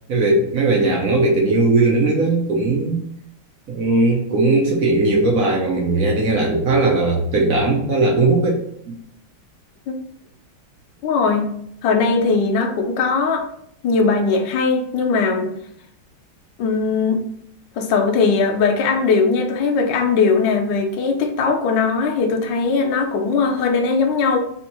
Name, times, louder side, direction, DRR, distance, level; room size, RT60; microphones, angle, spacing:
voice 1, 0.1-3.0 3.7-8.6 8.9-9.0, right 2 dB, 65° right, -1 dB, 0.8 m, -18 dB
voice 2, 11.0-11.5 11.8-13.4 13.8-15.5 16.6-17.2 17.8-24.4, left 4 dB, 70° left, 4 dB, 1.3 m, -19 dB
3.5 x 2.9 x 4.2 m, 0.69 s
omnidirectional pair, 2.2 m